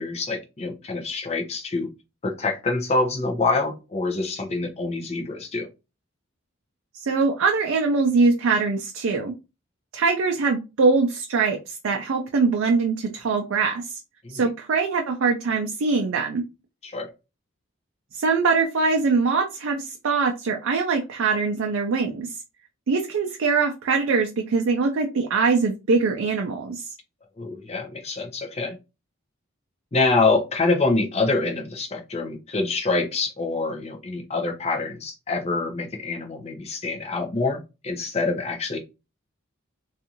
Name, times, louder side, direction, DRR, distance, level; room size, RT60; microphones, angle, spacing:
voice 1, 0.0-1.9 2.2-5.7 14.2-14.5 16.8-17.1 27.4-28.8 29.9-38.8, left 3 dB, 30° left, 2 dB, 0.5 m, -26 dB
voice 2, 7.1-9.3 9.9-13.8 14.3-16.4 18.1-22.3 22.9-26.8, right 4 dB, 75° right, 3 dB, 0.4 m, -22 dB
2.6 x 2.4 x 2.8 m, 0.28 s
head